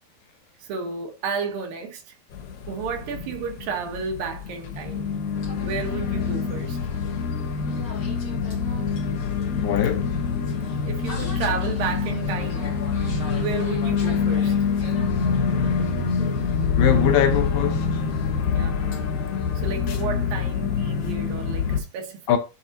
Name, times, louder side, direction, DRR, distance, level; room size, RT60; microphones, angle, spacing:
voice 1, 0.6-2.1 2.7-5.1 5.6-6.8 10.8-14.6 18.5-18.8 19.5-22.4, right 5 dB, 75° right, 3.2 m, -32 dB
sound 1, 2.3-21.8, left 5 dB, 90° left, 3.4 m, -26 dB
sound 2, 5.3-20.1, left 3 dB, 40° left, 2.7 m, -43 dB
voice 2, 9.6-10.1 16.8-18.0 22.3-22.4, left 9 dB, 75° left, 2.5 m, -21 dB
10.5 x 4.0 x 4.5 m
omnidirectional pair, 4.3 m